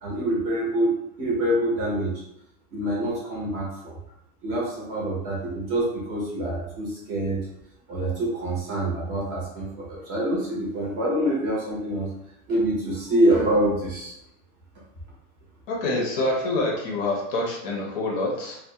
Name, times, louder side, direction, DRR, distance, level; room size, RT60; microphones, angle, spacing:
voice 1, 0.0-2.1 2.7-4.0 4.4-7.4 7.9-12.1 12.5-14.1, right 1 dB, 30° right, -5 dB, 0.5 m, -25 dB
voice 2, 15.7-18.6, left 2 dB, 45° left, -1 dB, 0.5 m, -26 dB
2.3 x 2.0 x 2.7 m, 0.80 s
supercardioid pair, 180°, 39 cm